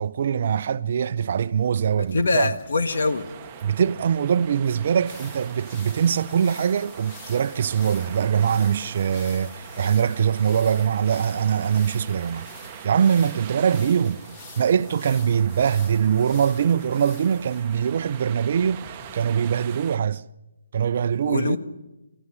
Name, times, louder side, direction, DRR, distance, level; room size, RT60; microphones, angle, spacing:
voice 1, 0.0-2.5 3.6-12.5 12.8-14.2 14.6-20.2 20.7-21.6, right 8 dB, 45° right, 0.6 m, -22 dB
sound 1, 1.4-19.2, left 4 dB, 25° left, 1.6 m, -47 dB
voice 2, 2.1-3.3 21.2-21.6, left 3 dB, 65° left, 1.5 m, -23 dB
sound 2, 2.9-20.0, right 10 dB, 25° right, 1.0 m, -42 dB
25.0 x 15.0 x 7.4 m
figure-of-eight pair, 150°, 0 cm